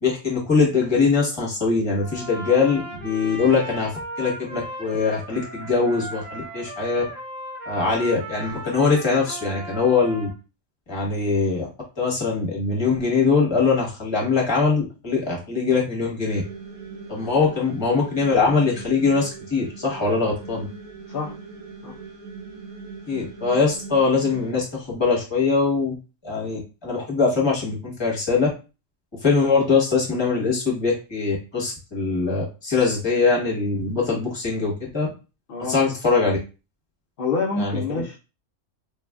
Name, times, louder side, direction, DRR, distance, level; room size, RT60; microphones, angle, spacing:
voice 1, 0.0-7.0 7.7-10.3 10.9-11.7 12.0-16.4 17.1-20.7 23.1-25.9 26.2-28.5 29.2-35.1 35.7-36.4 37.6-38.0, left 4 dB, 20° left, -3 dB, 1.0 m, -22 dB
Trumpet, 2.0-10.3, right 1 dB, 55° right, 1.1 m, -36 dB
sound 1, 16.3-24.5, right 4 dB, 35° right, 1.0 m, -40 dB
voice 2, 37.2-38.2, left 4 dB, 65° left, -1 dB, 0.6 m, -27 dB
3.6 x 2.4 x 2.3 m, 0.31 s
omnidirectional pair, 1.4 m